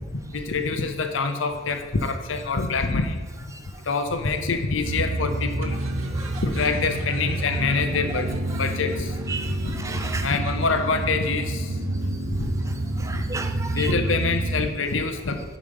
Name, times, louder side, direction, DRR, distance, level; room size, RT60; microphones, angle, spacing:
voice 1, 0.3-3.3 3.9-5.8 6.4-8.3 8.6-9.1 9.5-9.6 10.2-11.8 12.2-12.5 13.1-13.2 13.7-15.4, left 4 dB, 70° left, 7 dB, 0.7 m, -25 dB
sound 1, 4.8-14.7, right 1 dB, 85° right, 0.7 m, -28 dB
voice 2, 9.3-10.3 13.0-13.9, right 3 dB, 15° right, 6 dB, 0.4 m, -34 dB
6.7 x 5.1 x 5.4 m, 1.4 s
head